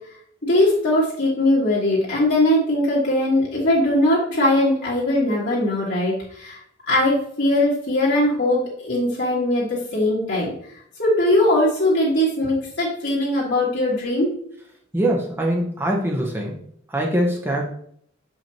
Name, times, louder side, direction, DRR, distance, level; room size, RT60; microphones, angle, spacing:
voice 1, 0.4-6.6 6.9-10.5 11.0-14.3, left 1 dB, 60° left, -7 dB, 2.0 m, -20 dB
voice 2, 14.9-16.6 16.9-17.6, right 1 dB, 10° right, -1 dB, 1.0 m, -22 dB
6.9 x 5.8 x 3.0 m, 0.65 s
head